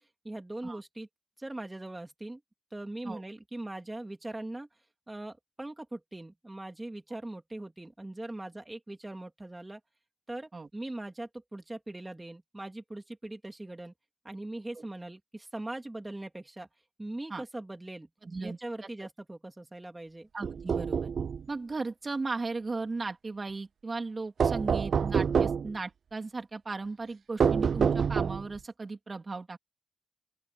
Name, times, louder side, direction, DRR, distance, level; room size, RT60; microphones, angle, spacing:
voice 1, 0.2-1.1 1.4-2.4 2.7-4.7 5.1-9.8 10.3-13.9 14.2-16.7 17.0-18.1 18.4-20.3, right 2 dB, 20° right, 3.2 m, -41 dB
voice 2, 18.2-18.6 20.3-21.1 21.5-29.6, right 3 dB, 45° right, 3.1 m, -36 dB
sound 1, 20.4-21.4 24.4-25.7 27.4-28.6, right 6 dB, 85° right, 0.3 m, -27 dB
open air
cardioid pair, 75°, 0 cm